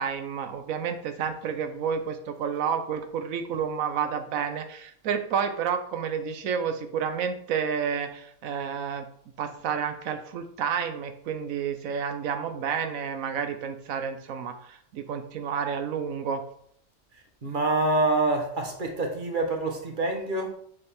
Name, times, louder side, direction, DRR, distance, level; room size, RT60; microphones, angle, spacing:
voice 1, 0.0-9.1 9.4-16.4, right 7 dB, 85° right, 7 dB, 1.2 m, -30 dB
voice 2, 17.4-20.5, right 2 dB, 40° right, 2 dB, 1.4 m, -26 dB
6.8 x 5.5 x 3.5 m, 0.64 s
omnidirectional pair, 1.4 m